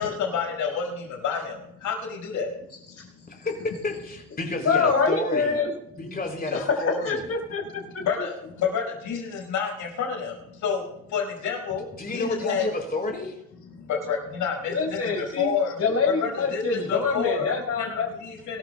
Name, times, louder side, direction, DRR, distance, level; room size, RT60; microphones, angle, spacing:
voice 1, 0.0-2.5 2.9-3.2 8.0-12.7 13.7-15.8 16.1-17.5 17.8-18.6, left 6 dB, 80° left, 0 dB, 5.5 m, -29 dB
voice 2, 3.3-5.5 6.0-7.2 12.0-13.3, left 2 dB, 30° left, 1 dB, 4.4 m, -30 dB
voice 3, 4.6-5.7 6.5-8.0 14.7-15.5 15.8-18.1, left 4 dB, 55° left, 1 dB, 5.1 m, -25 dB
24.0 x 14.5 x 2.3 m, 0.82 s
cardioid pair, 90°, 30 cm